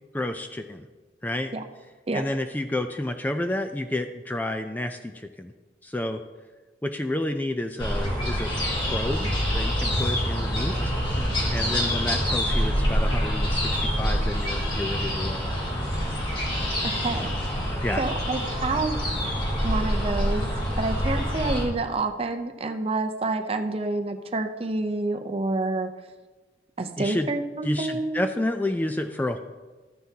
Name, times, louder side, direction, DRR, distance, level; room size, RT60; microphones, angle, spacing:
voice 1, 0.1-0.9 1.2-1.5 2.1-5.5 5.8-6.2 6.8-8.5 8.9-10.8 11.5-15.4 17.8-18.0 27.0-27.3 27.6-29.4, left 1 dB, 10° left, 7 dB, 0.3 m, -30 dB
sound 1, 7.8-21.6, equal, 25° left, 2.0 m, -26 dB
voice 2, 16.8-17.3 18.0-19.0 19.6-25.9 26.8-28.2, right 2 dB, 35° right, 7 dB, 0.6 m, -28 dB
13.5 x 9.4 x 2.8 m, 1.3 s
head